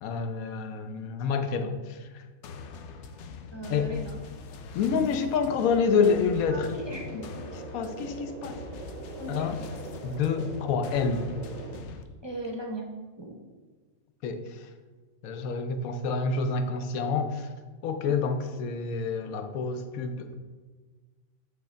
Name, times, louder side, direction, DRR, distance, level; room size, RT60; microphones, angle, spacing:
voice 1, 0.0-2.2 3.7-3.9 4.7-6.7 7.1-7.3 7.5-8.6 9.3-9.6 10.0-11.3 14.2-14.6 15.2-17.5 17.8-20.3, left 5 dB, 80° left, 8 dB, 1.1 m, -28 dB
sound 1, 2.4-12.0, left 4 dB, 65° left, 0.7 m, -43 dB
voice 2, 3.5-4.2 6.5-7.1 9.2-9.5 12.2-12.9 13.2-13.4 18.0-18.2, right 1 dB, 30° right, 0 dB, 0.5 m, -38 dB
sound 2, 6.6-11.8, right 5 dB, 75° right, 1.0 m, -42 dB
8.1 x 3.4 x 4.3 m, 1.4 s
omnidirectional pair, 1.5 m